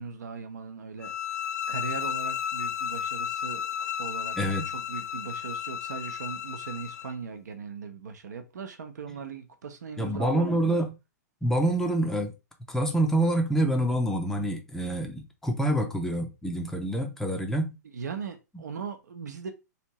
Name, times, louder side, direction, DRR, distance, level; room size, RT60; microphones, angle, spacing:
voice 1, 0.0-4.4 4.7-10.8 17.9-19.5, right 5 dB, 70° right, 0.8 m, -39 dB
sound 1, 1.0-7.1, left 9 dB, 65° left, 0.4 m, -33 dB
voice 2, 10.0-10.9 11.4-12.3 12.7-17.7, right 1 dB, 5° left, 0.6 m, -26 dB
3.3 x 2.6 x 3.0 m
figure-of-eight pair, 120°, 10 cm